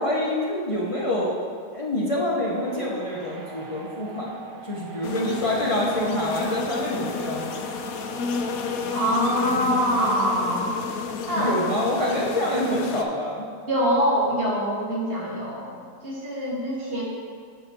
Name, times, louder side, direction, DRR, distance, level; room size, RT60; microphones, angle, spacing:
voice 1, 0.0-1.4 1.7-7.7 11.4-13.5, left 1 dB, 50° left, -5 dB, 0.3 m, -26 dB
sound 1, 2.5-10.2, right 4 dB, 50° right, 0.9 m, -42 dB
sound 2, 5.0-13.0, left 5 dB, 70° left, 0.8 m, -31 dB
voice 2, 8.9-10.9 11.3-11.5 13.7-17.0, equal, 35° right, -5 dB, 1.4 m, -24 dB
7.1 x 5.7 x 4.2 m, 2.1 s
omnidirectional pair, 1.9 m